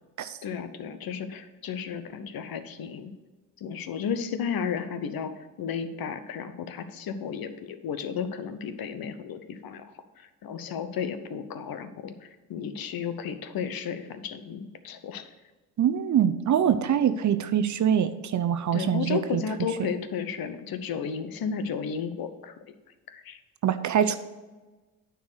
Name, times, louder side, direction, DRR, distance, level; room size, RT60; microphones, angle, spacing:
voice 1, 0.4-3.1 3.6-9.9 10.2-15.2 18.7-22.5 23.1-23.4, left 7 dB, 55° left, 10 dB, 0.9 m, -33 dB
voice 2, 15.8-19.4 23.6-24.2, right 9 dB, 40° right, 11 dB, 0.7 m, -24 dB
9.2 x 4.7 x 6.3 m, 1.2 s
hypercardioid pair, 55°, 43 cm